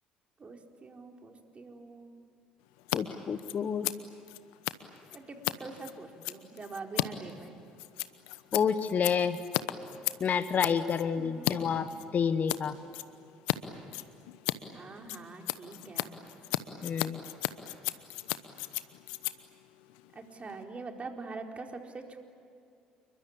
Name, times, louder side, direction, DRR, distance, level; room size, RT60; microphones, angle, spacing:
voice 1, 0.4-2.1 5.1-7.6 11.2-11.9 14.7-16.2 20.1-22.2, right 3 dB, 35° right, 3 dB, 4.3 m, -44 dB
Scissors, 2.8-3.0 3.2-11.5 11.9-12.6 12.9-13.6 13.8-20.6, left 18 dB, 70° left, 1.0 m, -35 dB
voice 2, 2.9-3.9 8.5-9.4 10.2-12.7 16.8-17.2, left 7 dB, 45° left, 12 dB, 1.3 m, -29 dB
29.0 x 23.0 x 8.8 m, 2.5 s
hypercardioid pair, 55°, 4 cm